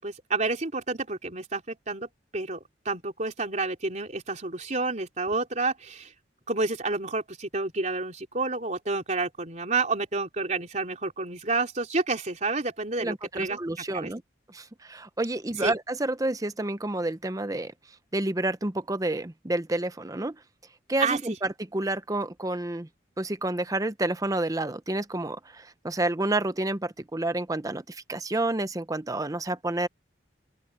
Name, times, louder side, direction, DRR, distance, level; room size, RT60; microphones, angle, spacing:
voice 1, 0.0-6.1 6.5-13.6 13.9-14.1 15.6-15.7 21.0-21.4, right 3 dB, 40° right, 4.0 m, -29 dB
voice 2, 13.0-14.2 14.5-17.7 18.1-20.4 20.9-22.9 23.2-29.9, right 2 dB, 20° right, 0.8 m, -29 dB
open air
head